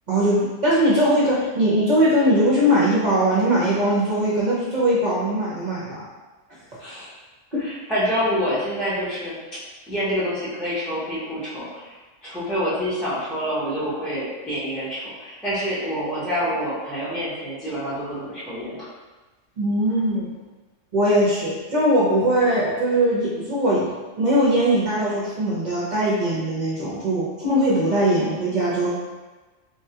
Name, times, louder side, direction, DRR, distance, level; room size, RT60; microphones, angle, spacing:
voice 1, 0.1-6.1 7.5-7.7 19.6-20.3 20.9-23.9 24.2-28.9, right 1 dB, 45° right, -7 dB, 0.6 m, -20 dB
voice 2, 7.6-9.4 9.9-11.8 12.2-18.9, equal, ahead, -10 dB, 0.6 m, -27 dB
3.5 x 2.2 x 2.8 m, 1.2 s
omnidirectional pair, 1.3 m